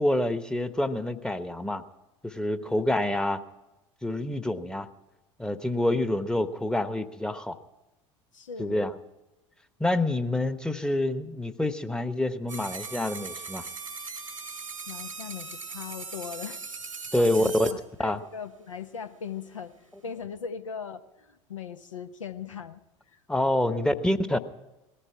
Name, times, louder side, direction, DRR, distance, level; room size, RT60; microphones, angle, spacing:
voice 1, 0.0-1.8 2.2-3.4 4.0-4.9 5.4-7.6 8.6-9.0 9.8-13.6 17.1-17.7 18.0-18.2 23.3-24.4, left 1 dB, 5° left, 11 dB, 1.0 m, -27 dB
voice 2, 8.3-8.9 14.9-16.6 17.2-19.7 20.0-22.8 23.6-24.0 24.3-24.4, left 6 dB, 75° left, 9 dB, 1.0 m, -39 dB
sound 1, 12.5-17.7, right 4 dB, 90° right, 1.5 m, -39 dB
19.5 x 14.5 x 4.7 m, 1.0 s
figure-of-eight pair, 70°, 16 cm